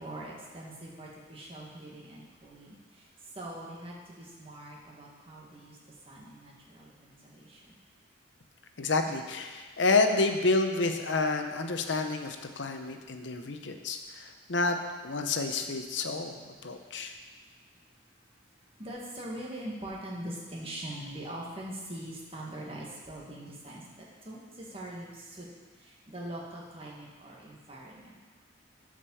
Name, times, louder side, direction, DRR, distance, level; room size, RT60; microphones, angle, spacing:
voice 1, 0.0-2.8 3.3-5.8 6.1-7.8 18.8-25.5 25.8-28.2, right 1 dB, 30° right, -4 dB, 1.7 m, -42 dB
voice 2, 8.8-14.8 15.0-16.4 16.6-17.1, left 3 dB, 60° left, 6 dB, 0.8 m, -29 dB
8.8 x 5.1 x 6.9 m, 1.4 s
head